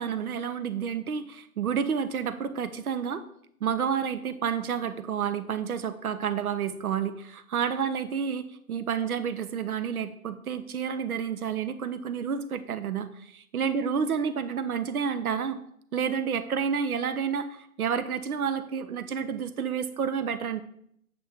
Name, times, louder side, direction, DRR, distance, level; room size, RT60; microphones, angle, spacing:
voice 1, 0.0-3.2 3.6-8.4 8.7-15.6 15.9-20.6, right 7 dB, 80° right, 12 dB, 0.8 m, -30 dB
7.6 x 6.6 x 3.6 m, 0.70 s
hypercardioid pair, 145°, 43 cm